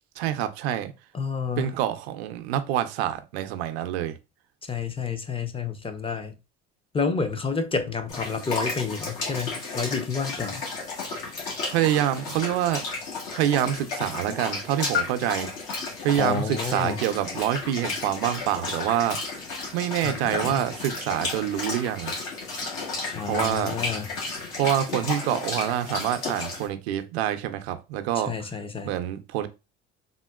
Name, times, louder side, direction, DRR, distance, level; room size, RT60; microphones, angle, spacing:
voice 1, 0.2-0.9 1.6-4.2 11.7-12.9 13.3-15.5 16.0-19.2 19.7-22.1 23.2-23.8 24.6-28.3 28.9-29.5, right 11 dB, 90° right, 0.5 m, -26 dB
voice 2, 1.1-1.8 4.7-6.4 6.9-10.6 16.2-17.0 20.0-20.6 23.1-24.1 28.2-28.9, left 5 dB, 20° left, 0.4 m, -29 dB
sound 1, 8.1-26.7, left 3 dB, 75° left, 1.4 m, -33 dB
3.7 x 2.0 x 2.2 m
supercardioid pair, 80°, 31 cm